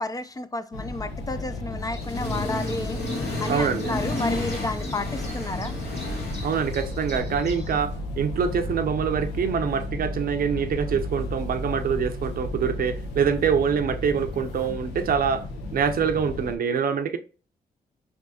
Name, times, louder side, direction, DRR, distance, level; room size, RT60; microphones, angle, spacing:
voice 1, 0.0-3.0 3.4-5.7, left 2 dB, 20° left, 0.4 m, -31 dB
sound 1, 0.7-16.6, left 2 dB, 90° left, 0.8 m, -34 dB
sound 2, 1.9-7.8, left 1 dB, 40° left, 1.7 m, -41 dB
Accelerating revving vroom, 2.0-7.2, left 2 dB, 70° left, 1.4 m, -32 dB
voice 2, 3.5-4.0 6.4-15.5 15.7-17.2, right 7 dB, 60° right, 0.5 m, -25 dB
3.4 x 2.9 x 2.8 m
supercardioid pair, 60°, 17 cm